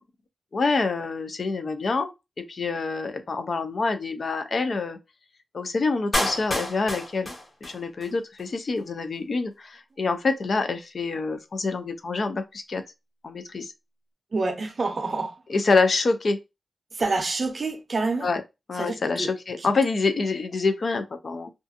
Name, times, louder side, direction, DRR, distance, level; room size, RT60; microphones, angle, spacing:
voice 1, 0.5-2.1 2.4-5.0 5.5-7.3 7.6-12.8 13.2-13.7 15.5-16.4 18.2-18.4 18.7-21.5, left 3 dB, 55° left, 0.4 m, -26 dB
Clapping, 6.1-8.1 8.4-8.5, left 1 dB, 35° left, 1.3 m, -29 dB
voice 2, 14.3-15.4 16.9-18.3 18.8-19.3 19.6-19.7, right 3 dB, 45° right, 0.5 m, -27 dB
2.4 x 2.4 x 2.4 m
wide cardioid pair, 125°, 0 cm